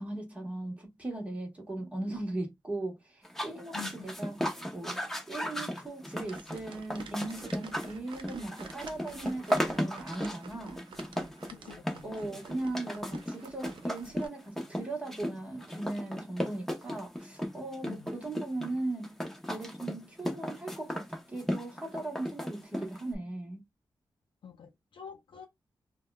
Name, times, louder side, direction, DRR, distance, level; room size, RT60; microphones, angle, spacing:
voice 1, 0.0-4.4 4.7-5.0 5.3-10.8 12.0-19.1 19.5-23.6, right 2 dB, 15° right, 1.2 m, -38 dB
sound 1, 3.2-23.1, equal, 5° left, 0.7 m, -36 dB
voice 2, 3.7-4.1 11.5-12.4 17.9-18.1 24.4-25.5, left 7 dB, 75° left, 0.5 m, -46 dB
sound 2, 6.2-14.3, right 5 dB, 70° right, 0.5 m, -49 dB
3.5 x 2.2 x 2.2 m
wide cardioid pair, 130°, 9 cm